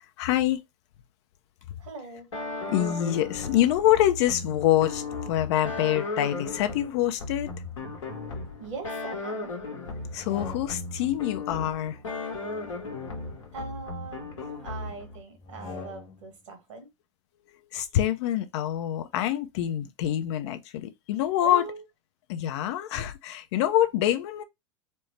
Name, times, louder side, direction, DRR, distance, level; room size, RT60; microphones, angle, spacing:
voice 1, 0.2-0.6 2.7-7.5 10.1-12.0 17.7-21.6 22.3-24.4, left 12 dB, 65° left, 0.7 m, -25 dB
voice 2, 1.8-2.3 8.6-9.5 13.5-14.3 14.6-16.9 21.4-21.8, right 4 dB, 75° right, 1.6 m, -40 dB
sound 1, 2.3-15.2, left 3 dB, 80° left, 1.3 m, -36 dB
sound 2, 10.0-11.1 12.4-14.0 15.4-16.4, left 5 dB, 45° left, 1.5 m, -45 dB
4.4 x 2.1 x 3.1 m
hypercardioid pair, 90°, 16 cm